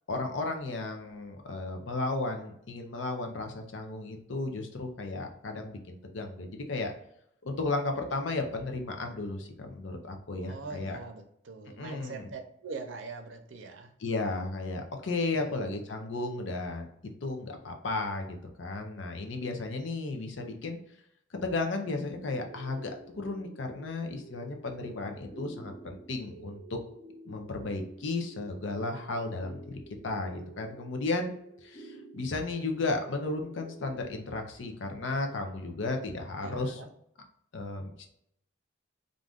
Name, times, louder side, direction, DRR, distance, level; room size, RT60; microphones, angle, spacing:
voice 1, 0.1-6.9 7.4-11.0 11.8-12.3 14.0-16.9 17.2-20.8 21.4-26.8 27.2-29.6 30.0-31.3 31.6-36.8 37.5-38.1, left 3 dB, 65° left, 4 dB, 0.6 m, -34 dB
voice 2, 10.4-13.9 15.3-15.6 36.4-36.9, right 4 dB, 70° right, 4 dB, 0.6 m, -42 dB
sound 1, 22.2-34.0, right 2 dB, 35° left, 0.8 m, -50 dB
2.5 x 2.4 x 3.4 m, 0.74 s
head